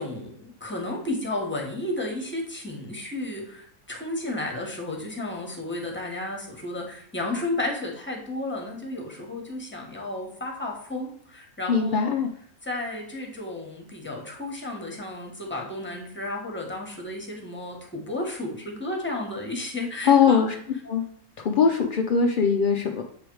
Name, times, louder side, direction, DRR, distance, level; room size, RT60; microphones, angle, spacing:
voice 1, 0.0-12.1 12.6-20.5, left 2 dB, 10° left, 0 dB, 1.2 m, -33 dB
voice 2, 11.7-12.3 14.5-14.6 20.0-20.5 20.8-21.0 21.4-23.0, left 6 dB, 65° left, 3 dB, 0.5 m, -21 dB
7.7 x 3.4 x 4.6 m, 0.63 s
omnidirectional pair, 1.5 m